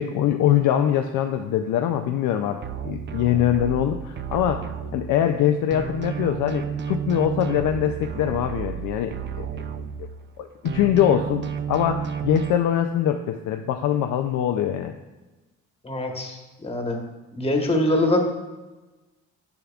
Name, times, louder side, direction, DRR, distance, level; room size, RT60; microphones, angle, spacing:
voice 1, 0.0-4.6 4.9-9.5 10.4-10.5 10.7-11.4 11.7-14.9, left 10 dB, 80° left, 6 dB, 0.5 m, -23 dB
sound 1, 2.6-5.4 5.7-10.4 10.7-12.5, right 7 dB, 40° right, 0.4 m, -32 dB
voice 2, 15.8-17.0 17.3-18.2, left 1 dB, 20° left, 2 dB, 1.2 m, -23 dB
9.2 x 7.0 x 2.4 m, 1.2 s
cardioid pair, 90°, 30 cm